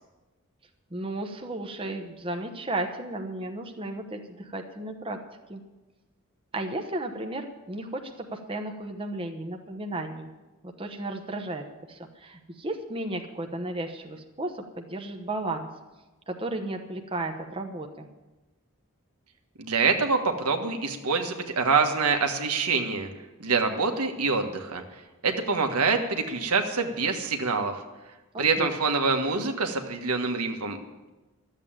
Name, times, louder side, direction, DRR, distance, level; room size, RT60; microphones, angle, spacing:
voice 1, 0.9-5.2 5.5-5.6 6.5-10.3 10.6-15.7 16.3-18.1 28.3-28.7, right 2 dB, 25° right, 4 dB, 1.0 m, -34 dB
voice 2, 19.6-23.1 23.4-24.8 25.2-27.7 28.4-30.8, right 4 dB, 90° right, 4 dB, 1.5 m, -25 dB
13.0 x 8.2 x 9.0 m, 1.1 s
head